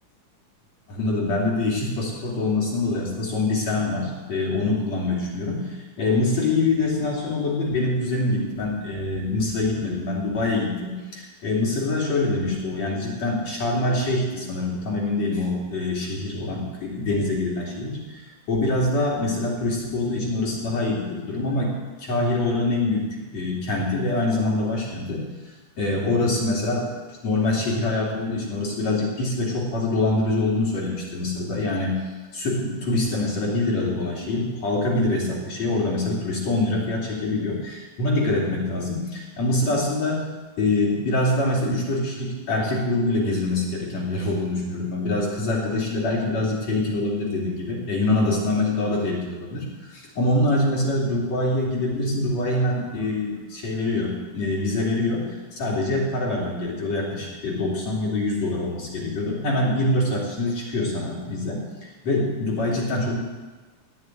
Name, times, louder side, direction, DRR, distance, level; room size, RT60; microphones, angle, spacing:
voice 1, 0.9-26.9 27.2-32.0 32.3-40.3 40.6-63.2, left 2 dB, 55° left, -4 dB, 3.9 m, -25 dB
18.5 x 6.6 x 9.4 m, 1.2 s
omnidirectional pair, 3.7 m